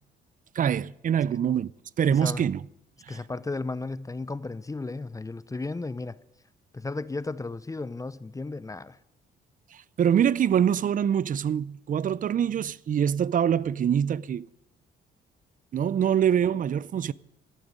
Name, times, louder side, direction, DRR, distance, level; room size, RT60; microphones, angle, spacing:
voice 1, 0.6-1.7 2.0-2.6 3.1-3.2 10.0-14.5 15.7-17.1, right 8 dB, 45° right, 0.5 m, -24 dB
voice 2, 2.1-2.4 3.1-6.2 6.7-9.0, left 3 dB, 15° left, 0.6 m, -34 dB
15.0 x 8.9 x 9.5 m
cardioid pair, 90°, 20 cm